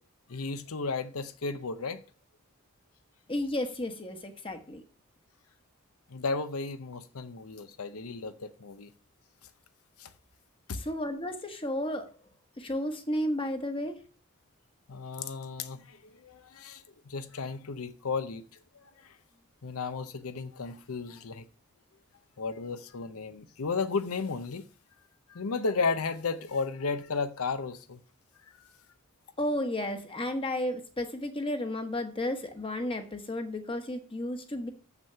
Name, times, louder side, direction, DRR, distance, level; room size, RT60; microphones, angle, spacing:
voice 1, 0.3-2.0 6.1-8.9 10.0-10.1 10.7-10.8 14.9-18.4 18.7-19.2 19.6-21.5 22.4-24.7 25.3-28.0 28.6-28.7, left 4 dB, 80° left, 0.8 m, -34 dB
voice 2, 3.3-4.8 10.8-12.1 12.6-14.0 29.4-34.7, left 1 dB, 25° left, 1.1 m, -33 dB
7.3 x 6.0 x 6.7 m
head